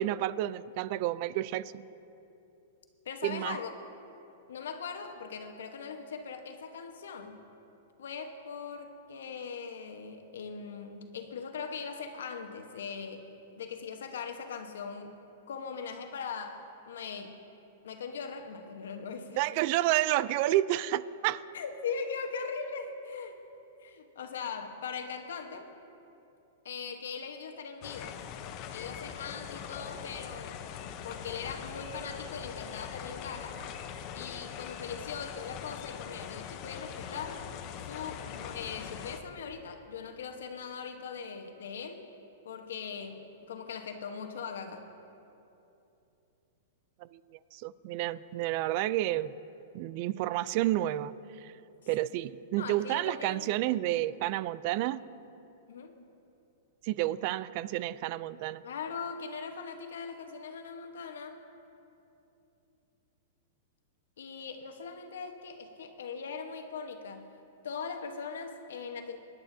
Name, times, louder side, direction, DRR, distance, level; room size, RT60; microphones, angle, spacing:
voice 1, 0.0-1.8 3.2-3.6 19.4-21.4 47.1-49.3 49.7-51.5 51.9-55.0 56.8-58.6, right 14 dB, 45° right, 18 dB, 0.3 m, -30 dB
voice 2, 3.0-3.7 4.5-7.4 8.0-13.3 13.5-15.2 15.5-17.4 17.8-19.4 21.5-23.4 23.8-25.7 26.6-28.2 28.7-30.6 31.0-33.6 34.1-37.4 37.8-42.0 42.4-44.9 52.6-53.5 55.7-55.9 58.6-61.4 64.2-67.3 67.6-69.2, left 6 dB, 80° left, 5 dB, 1.1 m, -40 dB
sound 1, 27.8-39.2, left 8 dB, 40° left, 0.7 m, -42 dB
21.5 x 10.5 x 2.7 m, 2.8 s
hypercardioid pair, 140°, 0 cm